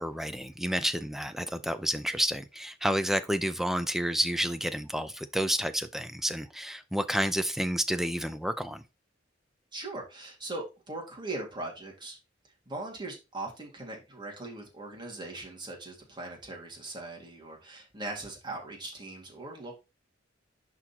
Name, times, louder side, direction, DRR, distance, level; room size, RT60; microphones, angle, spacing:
voice 1, 0.0-8.8, equal, ahead, 0.5 m, -30 dB
voice 2, 9.7-12.2 12.7-19.8, right 2 dB, 25° right, 2.1 m, -40 dB
10.5 x 3.9 x 3.0 m
head